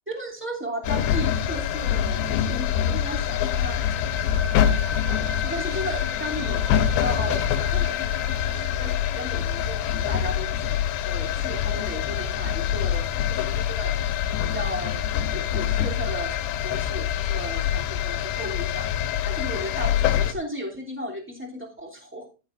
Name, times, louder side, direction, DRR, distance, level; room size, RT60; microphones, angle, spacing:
voice 1, 0.1-3.8 4.4-4.7 5.4-8.0 8.5-10.7 11.0-13.9 14.4-18.9 19.2-22.3, equal, 5° right, -1 dB, 1.7 m, -35 dB
sound 1, 0.8-20.3, left 10 dB, 80° left, 3.0 m, -25 dB
sound 2, 3.6-10.1, left 2 dB, 85° right, 5.8 m, -39 dB
15.0 x 9.8 x 2.5 m, 0.32 s
omnidirectional pair, 5.1 m